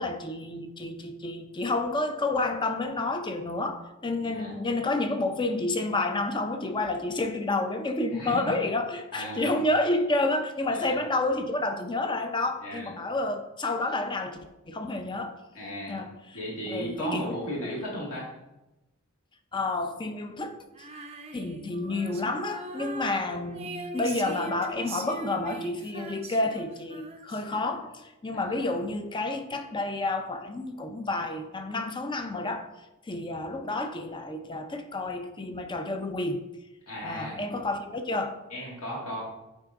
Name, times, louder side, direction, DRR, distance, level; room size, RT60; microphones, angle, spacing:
voice 1, 0.0-14.4 14.7-15.4 15.9-16.2 16.7-17.7 19.5-20.6 21.3-32.7 33.1-36.4 37.0-38.4, left 2 dB, 20° left, 7 dB, 0.5 m, -30 dB
voice 2, 4.2-4.5 8.1-8.5 9.1-9.5 10.7-11.0 12.6-12.9 15.5-16.0 16.3-18.3 28.3-28.6 36.9-37.4 38.5-39.2, equal, 70° left, -4 dB, 1.8 m, -36 dB
Female singing, 20.7-28.1, right 4 dB, 25° right, 0.5 m, -41 dB
9.1 x 3.9 x 3.6 m, 0.98 s
head